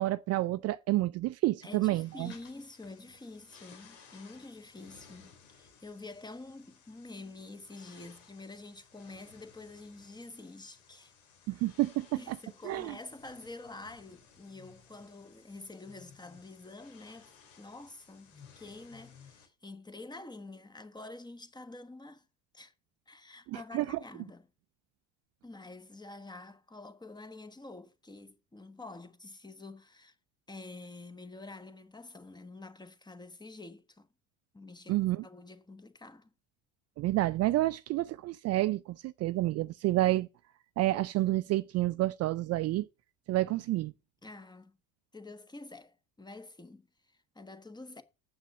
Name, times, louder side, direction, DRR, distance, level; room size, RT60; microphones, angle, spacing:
voice 1, 0.0-2.3 11.5-12.4 12.6-13.0 23.5-24.0 34.9-35.2 37.0-40.3 40.8-42.9 43.3-43.9, right 17 dB, 45° right, 0.4 m, -29 dB
voice 2, 1.6-11.1 11.5-11.6 12.1-22.2 22.5-22.7 23.1-24.5 25.4-30.1 30.5-34.1 34.5-36.3 44.2-44.8 45.1-48.0, left 2 dB, 10° left, 1.2 m, -48 dB
sound 1, 1.9-19.5, left 6 dB, 85° left, 2.9 m, -58 dB
8.0 x 6.0 x 6.8 m
supercardioid pair, 90°, 36 cm